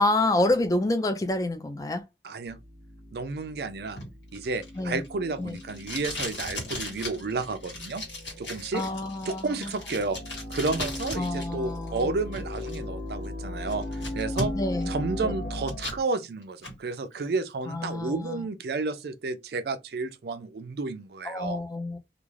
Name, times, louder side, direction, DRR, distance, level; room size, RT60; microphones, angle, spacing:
voice 1, 0.0-2.0 4.8-5.0 5.4-5.6 8.7-9.7 11.2-12.1 14.5-14.9 15.2-15.3 17.7-18.4 21.2-22.0, left 2 dB, 20° left, 0.3 m, -28 dB
voice 2, 2.2-2.6 3.1-4.0 4.3-8.1 8.4-8.8 9.3-10.2 10.5-14.5 14.9-21.6, right 3 dB, 60° right, 0.4 m, -31 dB
sound 1, 2.4-15.9, left 1 dB, 65° left, 0.7 m, -38 dB
Packing tape duct tape, 4.0-11.5 11.7-12.8 13.2-13.3 13.7-14.8 15.2-16.0 16.4-16.8, left 1 dB, 85° left, 1.3 m, -37 dB
2.4 x 2.4 x 3.1 m
head